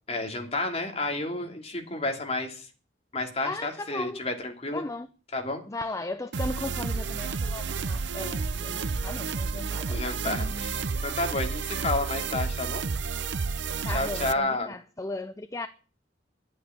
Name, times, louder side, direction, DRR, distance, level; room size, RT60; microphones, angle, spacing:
voice 1, 0.1-2.7 3.1-4.8 5.3-5.6 9.9-12.8 13.9-14.8, left 2 dB, 35° left, 2.9 m, -31 dB
voice 2, 3.4-4.2 4.7-5.1 5.7-10.0 10.3-10.7 13.8-15.7, left 2 dB, 15° left, 0.6 m, -36 dB
sound 1, 6.3-14.3, right 4 dB, 70° right, 0.7 m, -31 dB
11.0 x 8.5 x 9.5 m
head